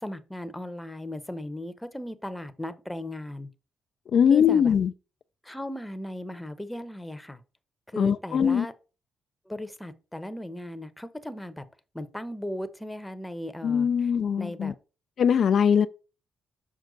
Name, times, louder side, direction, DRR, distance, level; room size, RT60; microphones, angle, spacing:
voice 1, 0.0-3.5 4.3-4.7 5.4-7.4 7.9-8.7 9.5-11.6 11.9-14.1 14.4-14.7, left 1 dB, 5° left, 0.8 m, -37 dB
voice 2, 4.1-4.9 8.0-8.7 13.6-14.7 15.2-15.9, left 7 dB, 65° left, 0.3 m, -21 dB
6.4 x 4.4 x 3.9 m
supercardioid pair, 65°, 0 cm